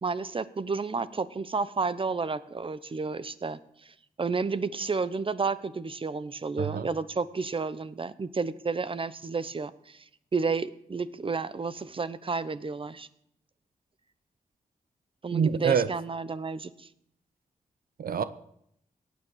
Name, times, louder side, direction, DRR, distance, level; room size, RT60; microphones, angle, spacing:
voice 1, 0.0-10.0 10.3-13.1 15.2-16.9, right 4 dB, 35° right, 16 dB, 0.9 m, -31 dB
voice 2, 6.6-6.9 15.3-15.9 18.0-18.2, right 7 dB, 80° right, 13 dB, 0.8 m, -25 dB
17.5 x 9.5 x 7.3 m, 0.72 s
wide cardioid pair, 100°, 15 cm